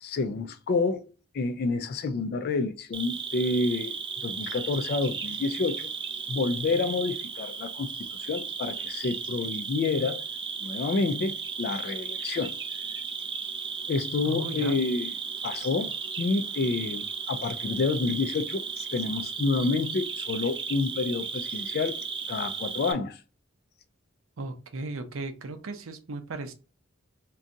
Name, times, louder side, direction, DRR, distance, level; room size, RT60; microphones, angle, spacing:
voice 1, 0.0-4.0 4.2-5.9 6.3-10.2 10.6-12.6 13.9-15.1 15.4-22.0 22.3-23.2, left 3 dB, 50° left, 0.3 m, -29 dB
Cricket, 2.9-22.9, right 5 dB, 25° right, 0.4 m, -35 dB
voice 2, 14.2-14.8 24.4-26.5, right 2 dB, 80° right, 0.6 m, -36 dB
2.6 x 2.3 x 3.8 m
head